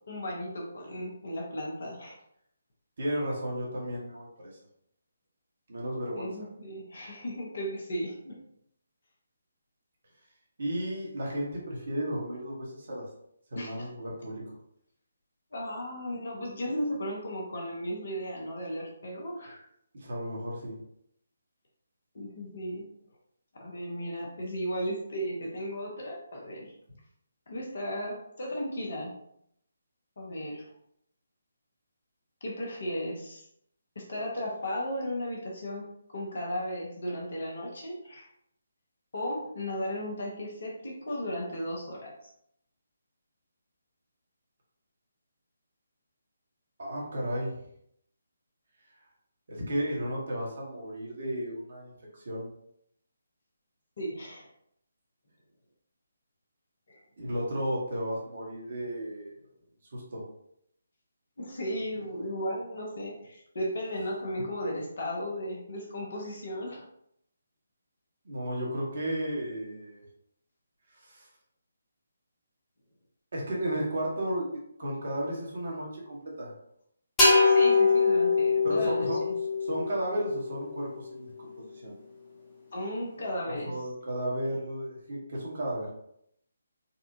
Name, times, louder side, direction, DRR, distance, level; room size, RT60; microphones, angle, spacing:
voice 1, 0.1-2.2 6.2-8.4 13.5-13.9 15.5-19.7 22.1-22.9 23.5-26.7 27.5-29.2 30.2-30.7 32.4-33.4 33.9-38.3 39.1-42.3 54.0-54.5 56.9-57.0 61.4-66.8 77.4-79.4 82.7-83.8, equal, 50° left, -1 dB, 1.0 m, -35 dB
voice 2, 3.0-4.5 5.7-6.5 10.6-13.0 13.5-14.4 19.9-20.8 46.8-47.6 49.5-51.9 52.2-52.5 57.2-59.3 59.9-60.2 68.2-70.0 71.0-71.3 73.3-76.5 78.6-79.3 79.6-81.9 83.5-85.9, right 1 dB, 50° right, -3 dB, 1.2 m, -33 dB
sound 1, 77.2-80.8, left 4 dB, 10° left, 1.0 m, -23 dB
4.1 x 2.3 x 2.7 m, 0.73 s
figure-of-eight pair, 145°, 0 cm